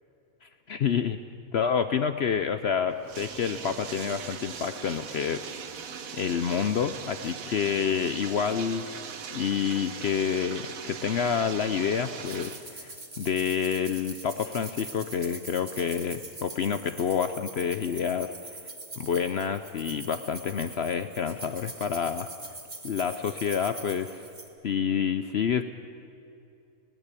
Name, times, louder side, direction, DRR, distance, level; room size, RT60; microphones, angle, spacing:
voice 1, 0.4-1.2 1.5-5.7 6.1-8.9 9.3-18.3 19.0-22.3 22.8-24.2 24.6-25.6, left 7 dB, 60° left, 10 dB, 0.8 m, -28 dB
Bathtub (filling or washing), 2.9-12.7, right 7 dB, 70° right, 1.4 m, -40 dB
sound 1, 12.3-24.5, right 2 dB, 30° right, 2.1 m, -43 dB
20.0 x 17.0 x 8.3 m, 2.6 s
omnidirectional pair, 1.5 m